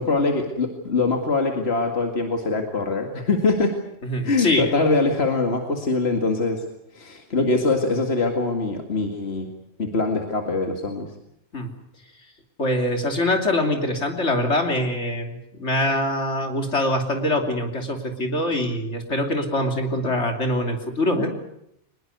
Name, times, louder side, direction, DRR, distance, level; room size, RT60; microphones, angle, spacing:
voice 1, 0.0-3.7 4.2-6.6 6.9-9.5 9.8-11.1, left 3 dB, 65° left, 3 dB, 2.4 m, -23 dB
voice 2, 4.0-4.7 11.5-11.7 12.6-21.3, left 1 dB, 80° left, 3 dB, 3.4 m, -24 dB
23.5 x 21.0 x 8.1 m, 0.78 s
omnidirectional pair, 1.2 m